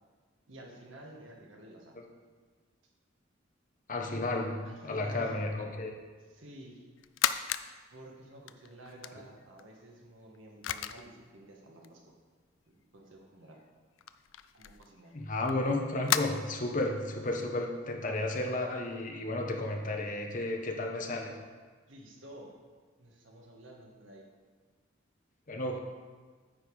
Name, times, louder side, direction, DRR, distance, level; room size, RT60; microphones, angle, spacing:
voice 1, 0.5-2.0 4.6-5.3 6.3-6.8 7.9-12.0 12.7-13.6 14.5-15.1 21.9-22.6 23.0-24.2, right 1 dB, 80° right, 0 dB, 1.5 m, -51 dB
voice 2, 3.9-5.9 15.1-21.3 25.5-25.8, left 2 dB, 40° left, 2 dB, 1.0 m, -33 dB
sound 1, 7.0-7.7 8.0-9.6 10.3-10.4 10.6-11.1 11.8-11.9 13.2-13.3 13.6-13.7 14.0-16.2, left 11 dB, 75° left, 0.4 m, -33 dB
9.2 x 5.4 x 4.8 m, 1.5 s
head